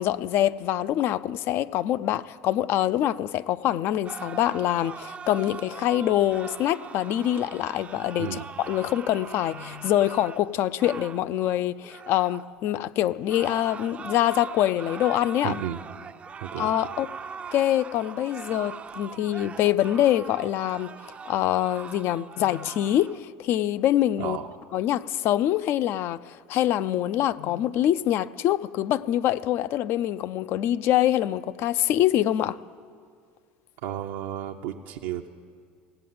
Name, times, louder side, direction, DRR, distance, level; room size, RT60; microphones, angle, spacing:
voice 1, 0.0-15.6 16.6-17.1 17.5-20.9 21.3-24.4 24.7-32.6, left 12 dB, 55° left, 0.4 m, -25 dB
sound 1, 4.0-12.5 13.2-23.2, right 6 dB, 25° right, 0.4 m, -41 dB
voice 2, 15.4-15.8 16.4-16.7 24.2-24.5 33.8-35.3, right 10 dB, 80° right, 0.6 m, -33 dB
16.5 x 7.7 x 9.3 m
supercardioid pair, 105°, 5 cm